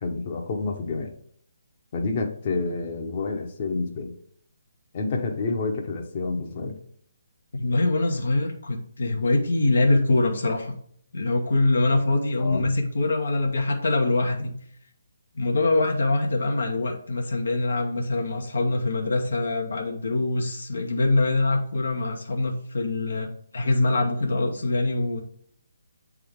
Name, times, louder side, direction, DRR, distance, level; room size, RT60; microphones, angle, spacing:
voice 1, 0.0-1.1 1.9-4.1 4.9-6.8 12.4-12.7, left 3 dB, 40° left, 2 dB, 1.0 m, -28 dB
voice 2, 7.5-10.8 11.1-14.6 15.3-25.2, left 2 dB, 70° left, 2 dB, 0.9 m, -24 dB
7.7 x 3.6 x 3.6 m, 0.63 s
figure-of-eight pair, 145°, 0 cm